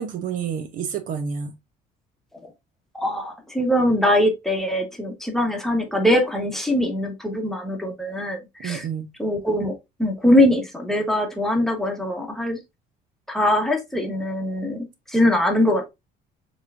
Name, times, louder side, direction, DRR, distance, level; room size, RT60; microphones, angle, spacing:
voice 1, 0.0-1.5 8.6-9.1, right 7 dB, 50° right, 0.7 m, -29 dB
voice 2, 2.9-8.9 9.2-12.6 13.3-15.9, left 1 dB, ahead, 1.1 m, -22 dB
6.3 x 3.1 x 2.5 m
cardioid pair, 150°, 17 cm